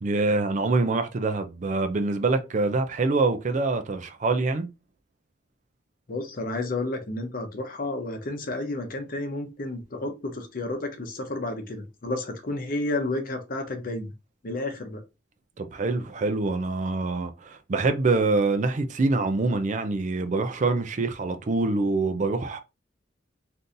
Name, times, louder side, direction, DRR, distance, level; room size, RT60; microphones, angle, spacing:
voice 1, 0.0-4.7 15.6-22.6, right 3 dB, 40° right, 0.4 m, -25 dB
voice 2, 6.1-14.1 14.4-15.0, left 2 dB, 50° left, 0.8 m, -31 dB
3.7 x 2.6 x 2.6 m
head